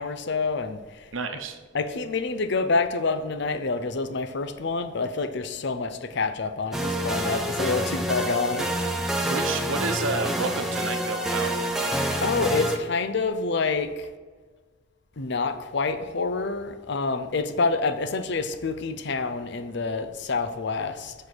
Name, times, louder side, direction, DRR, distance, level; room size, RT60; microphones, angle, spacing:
voice 1, 0.0-1.0 1.7-8.7 12.0-14.1 15.2-21.1, left 4 dB, 60° left, 10 dB, 0.7 m, -27 dB
voice 2, 1.1-1.6 9.3-11.5, right 3 dB, 80° right, 7 dB, 0.9 m, -30 dB
sound 1, 6.7-12.8, right 1 dB, ahead, 0.8 m, -27 dB
7.3 x 6.7 x 6.1 m, 1.5 s
head